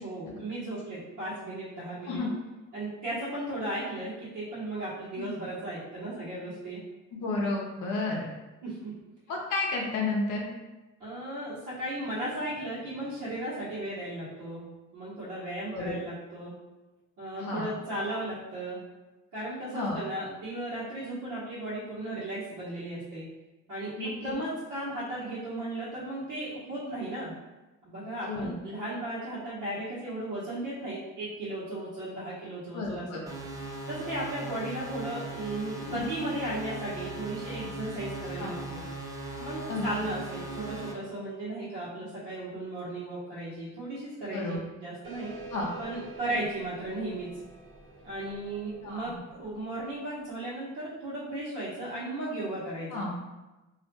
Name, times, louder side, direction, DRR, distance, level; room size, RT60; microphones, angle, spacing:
voice 1, 0.0-2.2 2.7-6.8 8.6-8.9 11.0-14.7 14.9-16.6 17.2-18.8 19.3-23.3 23.7-27.3 27.8-33.1 33.9-38.8 39.4-45.3 45.8-47.3 48.0-49.1 49.4-53.1, right 1 dB, 80° right, -11 dB, 0.9 m, -35 dB
voice 2, 7.1-8.2 9.3-10.5 15.7-15.9 17.4-17.7 19.7-20.0 24.0-24.3 28.2-28.6 32.7-33.2 35.8-36.0 38.3-38.5 39.7-39.9 44.3-44.6 45.5-45.7 48.8-49.2 52.9-53.1, left 3 dB, 80° left, -1 dB, 0.6 m, -32 dB
sound 1, 33.3-40.9, right 2 dB, 10° right, 0.4 m, -39 dB
sound 2, 45.0-50.1, right 2 dB, 40° right, 0.7 m, -47 dB
2.4 x 2.1 x 2.8 m, 1.1 s
cardioid pair, 90°, 30 cm